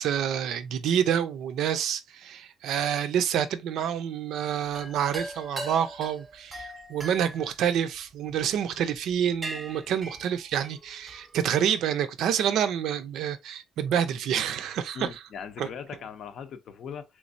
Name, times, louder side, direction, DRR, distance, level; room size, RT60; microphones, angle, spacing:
voice 1, 0.0-15.2 15.6-15.7, right 9 dB, 65° right, 0.4 m, -28 dB
sound 1, 4.7-8.4 9.0-9.1 9.4-11.3, right 1 dB, 20° right, 0.6 m, -40 dB
voice 2, 14.9-17.2, left 7 dB, 50° left, 0.5 m, -39 dB
3.4 x 3.1 x 2.5 m
cardioid pair, 155°, 0 cm